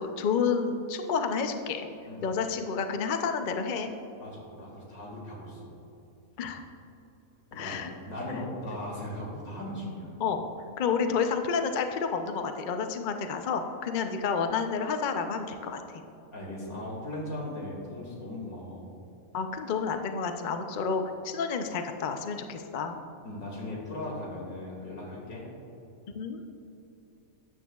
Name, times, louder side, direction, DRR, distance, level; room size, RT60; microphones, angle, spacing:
voice 1, 0.0-1.9 2.2-3.9 6.4-6.6 7.6-7.9 10.2-10.4 10.8-16.0 19.3-23.0 26.1-26.4, left 5 dB, 55° left, 6 dB, 0.5 m, -30 dB
voice 2, 4.2-5.7 7.5-10.1 16.3-18.9 23.2-25.4, left 1 dB, 85° left, -3 dB, 2.6 m, -38 dB
13.0 x 9.2 x 2.3 m, 2.9 s
omnidirectional pair, 1.5 m